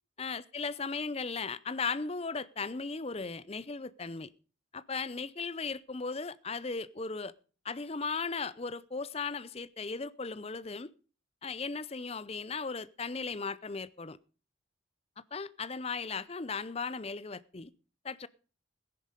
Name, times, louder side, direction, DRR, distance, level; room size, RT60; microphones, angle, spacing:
voice 1, 0.2-4.3 4.7-7.3 7.6-10.9 11.4-14.2 15.3-17.7 18.0-18.3, left 4 dB, 30° left, 0.6 m, -37 dB
15.5 x 10.5 x 5.1 m
head